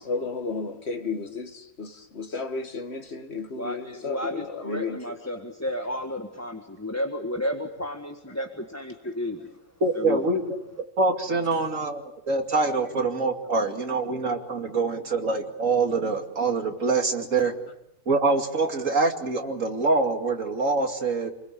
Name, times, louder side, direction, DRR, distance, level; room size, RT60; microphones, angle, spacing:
voice 1, 0.0-5.2 9.0-9.1, left 4 dB, 50° left, 2.2 m, -33 dB
voice 2, 3.5-9.6 9.9-10.3, left 1 dB, 10° left, 1.6 m, -32 dB
voice 3, 9.8-10.4 11.0-17.5 18.1-21.3, right 3 dB, 75° right, 2.9 m, -25 dB
29.0 x 21.5 x 8.5 m
omnidirectional pair, 1.4 m